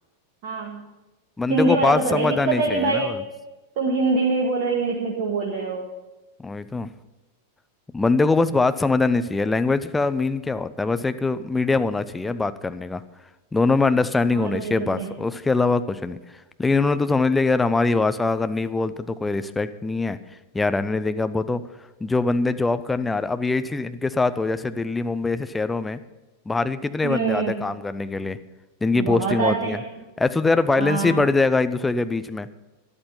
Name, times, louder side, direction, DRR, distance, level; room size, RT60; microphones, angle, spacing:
voice 1, 0.4-0.9 1.5-3.2 3.8-5.9 14.3-15.1 27.0-27.6 28.9-30.0 30.8-31.3, right 3 dB, 45° right, -1 dB, 1.8 m, -24 dB
voice 2, 1.4-3.2 6.4-6.9 7.9-13.0 13.5-16.2 16.6-20.2 20.5-21.7 22.0-26.0 26.5-28.4 28.8-29.8 30.2-32.5, left 3 dB, 10° left, 11 dB, 0.7 m, -23 dB
13.0 x 11.0 x 5.6 m, 1.1 s
figure-of-eight pair, 90°, 0 cm